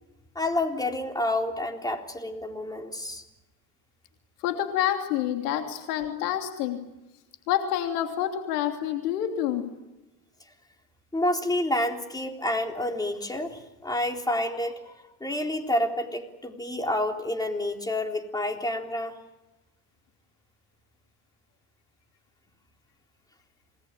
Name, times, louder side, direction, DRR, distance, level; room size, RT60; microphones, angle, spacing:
voice 1, 0.4-3.2 11.1-19.2, left 1 dB, 10° left, 3 dB, 3.8 m, -29 dB
voice 2, 4.4-6.9 7.5-9.7, left 11 dB, 90° left, 5 dB, 3.0 m, -28 dB
28.0 x 20.0 x 10.0 m, 1.0 s
supercardioid pair, 110°, 45 cm